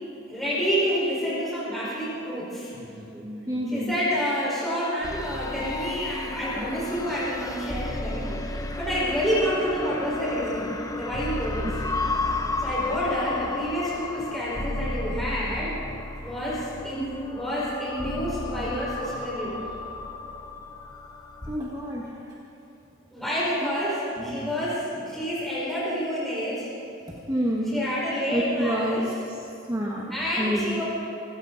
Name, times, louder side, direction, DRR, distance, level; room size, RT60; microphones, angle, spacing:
voice 1, 0.3-2.7 3.7-11.8 12.6-15.8 16.2-19.6 23.1-26.7 27.6-29.1 30.1-30.8, equal, ahead, -8 dB, 4.7 m, -28 dB
voice 2, 2.7-4.0 6.6-6.7 11.6-11.7 12.1-12.6 21.5-22.4 23.2-23.3 23.6-23.7 24.2-24.5 25.1-25.2 27.1-27.8 28.3-29.1 29.7-30.8, equal, 20° right, -4 dB, 1.4 m, -30 dB
sound 1, 5.0-21.6, left 2 dB, 15° left, 0.7 m, -33 dB
24.5 x 14.0 x 4.0 m, 2.9 s
head